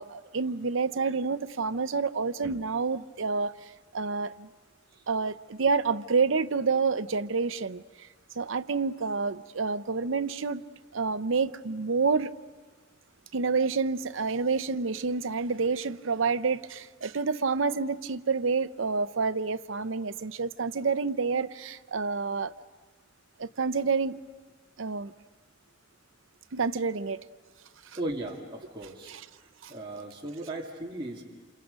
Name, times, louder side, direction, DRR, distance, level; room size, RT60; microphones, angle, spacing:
voice 1, 0.0-3.6 3.9-4.5 5.1-8.1 8.4-10.6 10.9-12.3 13.3-22.5 23.4-24.2 24.8-25.1 26.5-27.2 27.9-28.0 29.1-29.3 29.6-29.7, right 4 dB, 80° right, 0.7 m, -28 dB
voice 2, 28.0-29.1 29.7-31.2, right 1 dB, 25° right, 2.4 m, -36 dB
28.5 x 28.5 x 5.2 m
head